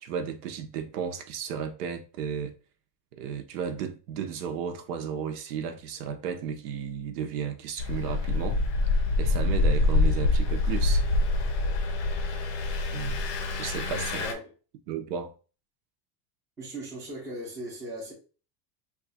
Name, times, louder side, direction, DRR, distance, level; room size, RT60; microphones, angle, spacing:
voice 1, 0.0-2.5 3.1-8.6 8.9-11.0 12.9-13.2 13.6-14.2 14.9-15.3, right 7 dB, 70° right, 0.8 m, -34 dB
Engine, 7.8-14.3, left 2 dB, 45° left, 0.6 m, -25 dB
voice 2, 14.1-14.5 16.6-18.1, right 1 dB, 5° right, 0.5 m, -38 dB
3.1 x 2.4 x 4.0 m
supercardioid pair, 175°, 49 cm